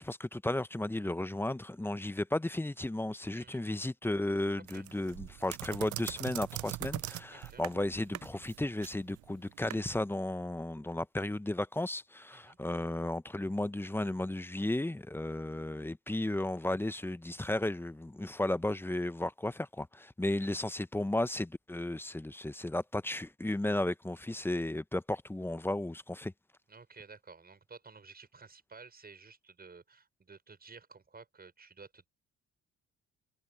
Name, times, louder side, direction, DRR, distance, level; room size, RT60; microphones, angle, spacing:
voice 1, 0.0-26.3, left 1 dB, 5° left, 0.7 m, -34 dB
sound 1, 4.7-9.8, right 17 dB, 75° right, 0.5 m, -42 dB
voice 2, 7.3-7.6 12.3-12.6 20.3-20.5 26.7-32.1, right 4 dB, 30° right, 6.1 m, -53 dB
cardioid pair, 90°, 30 cm